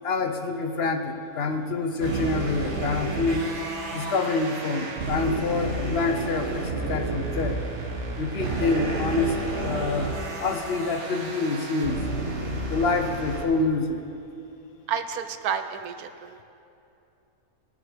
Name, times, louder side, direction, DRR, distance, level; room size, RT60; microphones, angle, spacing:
voice 1, 0.0-3.5 3.9-7.6 8.2-10.1 10.4-12.0 12.6-14.0, left 3 dB, 50° left, 5 dB, 0.8 m, -27 dB
sound 1, 2.0-13.4, right 2 dB, 45° right, 1.6 m, -31 dB
voice 2, 14.9-16.4, right 7 dB, 75° right, 9 dB, 1.1 m, -30 dB
18.5 x 6.7 x 5.0 m, 2.7 s
omnidirectional pair, 1.7 m